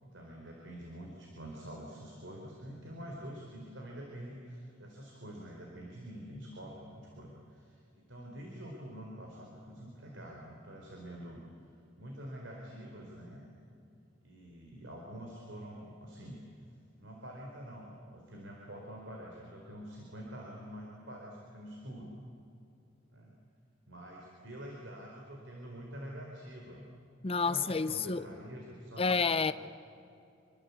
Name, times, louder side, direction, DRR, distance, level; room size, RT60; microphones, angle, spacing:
voice 1, 0.0-11.7 12.0-13.5 14.2-16.4 17.0-22.1 23.1-23.4 23.9-26.9 27.4-29.1, equal, 75° right, 4.4 m, -46 dB
voice 2, 27.2-28.2 29.0-29.5, left 4 dB, 30° left, 0.6 m, -29 dB
26.5 x 23.5 x 8.5 m
head